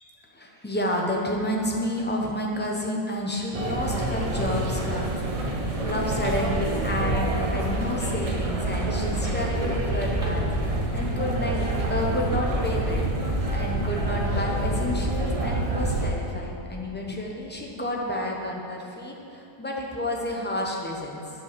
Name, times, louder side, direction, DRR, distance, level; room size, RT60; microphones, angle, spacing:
voice 1, 0.3-11.6 11.9-21.2, left 1 dB, 15° left, -1 dB, 0.4 m, -30 dB
sound 1, 3.5-16.1, right 1 dB, 40° right, 0.5 m, -27 dB
9.4 x 5.4 x 6.7 m, 2.7 s
omnidirectional pair, 1.8 m